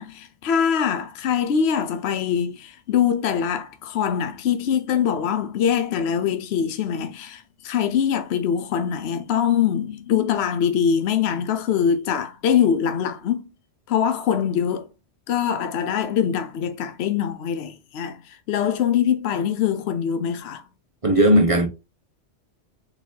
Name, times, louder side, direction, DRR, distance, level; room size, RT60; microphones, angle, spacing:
voice 1, 0.0-13.5 13.9-14.9 15.3-20.6, left 8 dB, 70° left, 0.9 m, -23 dB
voice 2, 21.0-21.7, equal, 30° right, 1.1 m, -16 dB
4.7 x 4.0 x 2.8 m
omnidirectional pair, 1.2 m